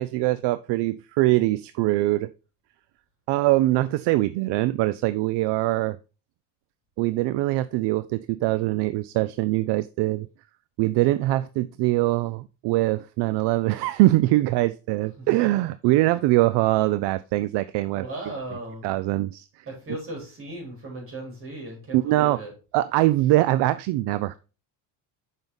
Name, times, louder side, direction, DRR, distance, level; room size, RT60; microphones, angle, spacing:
voice 1, 0.0-2.3 3.3-6.0 7.0-10.3 10.8-18.3 18.8-19.5 21.9-22.4 22.7-24.3, right 17 dB, 65° right, 0.5 m, -23 dB
voice 2, 17.9-18.9 19.7-22.5, right 1 dB, 25° right, 4.2 m, -37 dB
7.0 x 5.5 x 3.9 m
cardioid pair, 155°, 47 cm